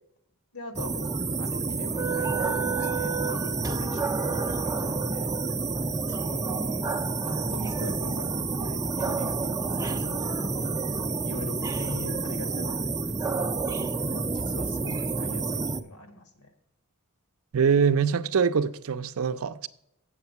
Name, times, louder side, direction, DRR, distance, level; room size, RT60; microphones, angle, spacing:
voice 1, 0.5-1.1 1.4-5.3 6.1-6.9 7.2-10.7 11.2-16.5, left 2 dB, 80° left, 1.6 m, -43 dB
sound 1, 0.8-15.8, right 3 dB, 15° right, 0.4 m, -29 dB
voice 2, 17.5-19.7, right 6 dB, 65° right, 0.5 m, -24 dB
8.1 x 7.3 x 5.8 m
head